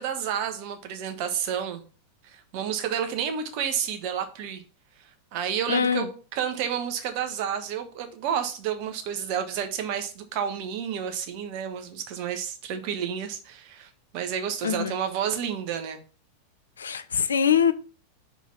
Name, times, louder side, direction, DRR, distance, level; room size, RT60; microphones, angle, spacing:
voice 1, 0.0-1.8 2.2-4.6 5.3-16.0, right 8 dB, 45° right, 1.2 m, -30 dB
voice 2, 5.7-6.1 14.6-14.9 16.8-17.7, left 7 dB, 70° left, 0.5 m, -23 dB
5.5 x 4.5 x 5.8 m
figure-of-eight pair, 90°, 0 cm